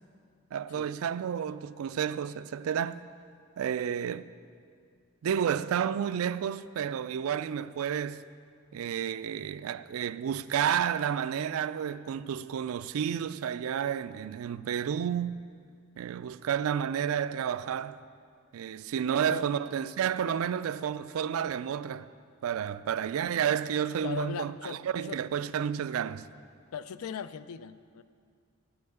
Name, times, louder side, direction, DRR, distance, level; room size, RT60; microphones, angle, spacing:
voice 1, 0.5-3.0 3.6-4.3 5.2-8.2 8.7-15.4 16.0-18.0 18.5-22.1 22.4-26.3, right 8 dB, 75° right, 0.3 m, -31 dB
voice 2, 24.0-25.2 26.7-28.0, left 6 dB, 85° left, 0.4 m, -39 dB
11.5 x 5.6 x 7.8 m
head